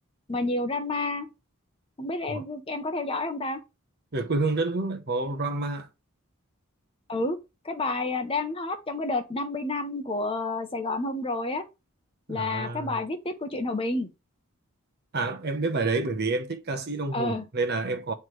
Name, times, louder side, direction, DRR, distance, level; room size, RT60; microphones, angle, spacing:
voice 1, 0.3-1.3 2.0-3.6 7.1-7.4 7.6-11.6 12.3-14.1 17.1-17.5, left 2 dB, 25° left, 0.8 m, -29 dB
voice 2, 4.1-5.9 12.3-13.0 15.1-18.1, right 3 dB, 50° right, 0.8 m, -28 dB
9.4 x 3.2 x 3.2 m
head